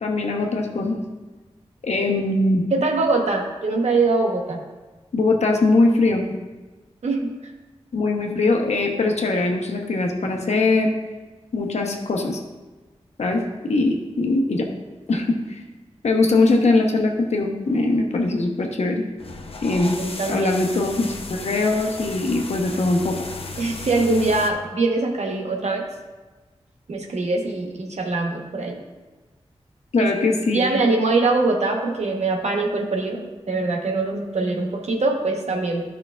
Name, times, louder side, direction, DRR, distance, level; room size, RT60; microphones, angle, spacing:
voice 1, 0.0-1.0 1.8-2.6 5.1-6.2 7.9-10.9 11.5-12.4 13.2-14.7 15.1-15.4 16.0-19.0 19.6-19.9 20.3-23.3 29.9-30.7, left 2 dB, 80° left, 1 dB, 1.0 m, -21 dB
voice 2, 2.7-4.6 7.0-7.3 20.0-20.5 23.6-25.9 26.9-28.8 30.0-30.1 30.5-35.8, right 3 dB, 85° right, 1 dB, 1.1 m, -23 dB
sound 1, 19.2-24.5, left 3 dB, 60° left, 0.7 m, -35 dB
12.5 x 5.6 x 2.4 m, 1.2 s
cardioid pair, 55°, 11 cm